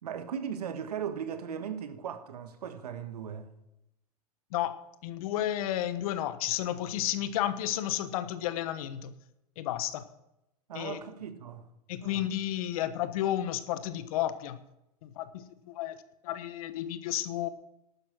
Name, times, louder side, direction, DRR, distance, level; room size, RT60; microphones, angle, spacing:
voice 1, 0.0-3.5 10.7-11.7 12.0-12.3, right 8 dB, 85° right, 1.5 m, -38 dB
voice 2, 5.0-9.1 9.6-10.0 10.7-11.0 11.9-14.6 15.0-16.0 16.2-17.5, left 12 dB, 65° left, 1.2 m, -32 dB
12.0 x 9.4 x 6.1 m
hypercardioid pair, 100°, 20 cm